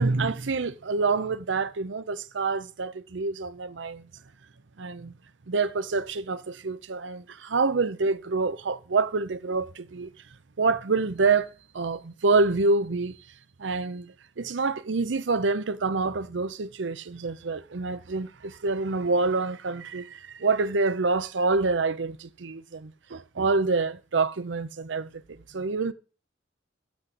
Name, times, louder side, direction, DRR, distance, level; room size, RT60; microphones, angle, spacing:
voice 1, 0.0-4.1 4.8-5.2 5.5-10.1 10.6-13.2 13.6-25.9, right 3 dB, 75° right, 0.7 m, -27 dB
7.2 x 6.2 x 7.8 m
head